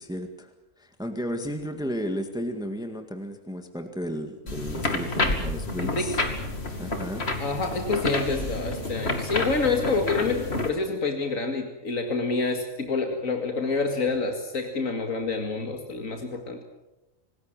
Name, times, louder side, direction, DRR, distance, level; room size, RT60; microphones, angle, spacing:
voice 1, 0.0-6.2 6.8-7.3, equal, 5° right, 6 dB, 1.8 m, -33 dB
sound 1, 4.5-10.7, left 2 dB, 50° left, 2.7 m, -29 dB
voice 2, 5.8-6.1 7.4-16.6, left 3 dB, 90° left, 4 dB, 2.5 m, -27 dB
26.5 x 19.5 x 7.4 m, 0.97 s
omnidirectional pair, 1.4 m